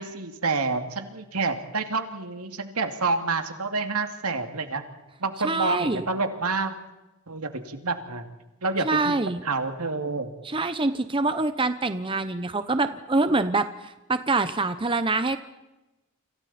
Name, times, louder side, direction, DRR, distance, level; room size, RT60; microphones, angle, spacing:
voice 1, 0.0-4.8 5.2-6.7 7.3-8.2 8.6-10.3, right 3 dB, 85° right, 6 dB, 2.5 m, -28 dB
voice 2, 5.4-6.0 8.8-9.4 10.4-15.4, right 3 dB, 25° right, 10 dB, 0.8 m, -25 dB
29.5 x 26.5 x 4.3 m, 0.99 s
head